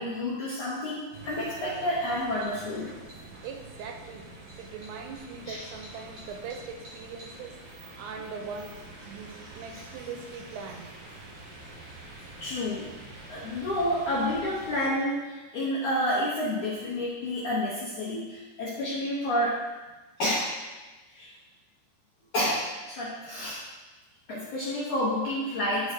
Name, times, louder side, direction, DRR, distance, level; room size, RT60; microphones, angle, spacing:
voice 1, 0.0-2.9 5.5-5.6 9.7-9.8 12.4-12.9 13.3-19.6 20.2-20.5 21.1-21.3 22.3-23.6 24.3-25.9, left 1 dB, 75° left, -8 dB, 1.8 m, -29 dB
sound 1, 1.1-14.9, right 2 dB, 50° right, 1.9 m, -46 dB
voice 2, 3.4-4.3 4.6-7.6 8.0-8.8 9.1-10.9, right 5 dB, 85° right, 4 dB, 2.9 m, -40 dB
11.5 x 4.8 x 2.7 m, 1.2 s
omnidirectional pair, 5.2 m